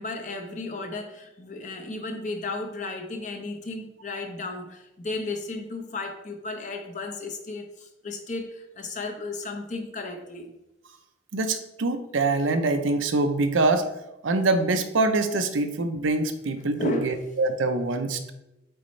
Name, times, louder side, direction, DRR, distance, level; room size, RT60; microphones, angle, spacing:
voice 1, 0.0-10.5 16.8-17.2, left 2 dB, 40° left, 4 dB, 0.8 m, -34 dB
voice 2, 11.3-13.9 14.2-18.3, right 2 dB, 85° right, 8 dB, 0.6 m, -24 dB
7.8 x 4.2 x 3.1 m, 0.91 s
head